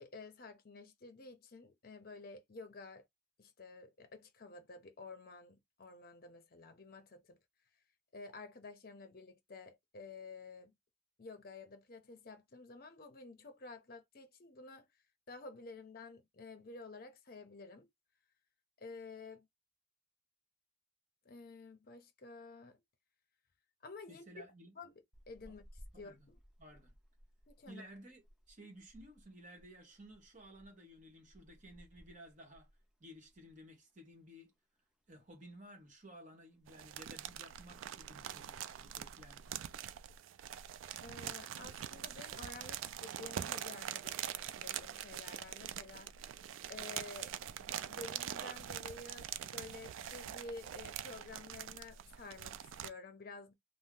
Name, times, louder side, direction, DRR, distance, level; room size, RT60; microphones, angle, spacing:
voice 1, 0.0-3.1 3.4-7.4 8.1-10.7 11.2-14.9 15.3-17.9 18.8-19.5 21.2-22.8 23.8-24.2 24.8-24.9 25.3-25.6 26.0-26.4 27.5-27.8 41.0-46.1 46.7-47.3 47.9-53.5, left 3 dB, 50° left, 0.6 m, -51 dB
voice 2, 24.1-24.7 25.4-25.5 25.9-26.3 26.6-26.9 27.7-32.7 33.0-34.5 35.1-39.6, equal, 40° right, 1.2 m, -55 dB
sound 1, 25.1-33.7 33.9-34.1 34.5-35.4 35.7-36.1 36.3-36.4 36.6-37.0 37.6-38.1, equal, 5° right, 0.5 m, -62 dB
sound 2, 36.7-52.9, right 10 dB, 85° right, 0.3 m, -44 dB
2.7 x 2.0 x 3.6 m
head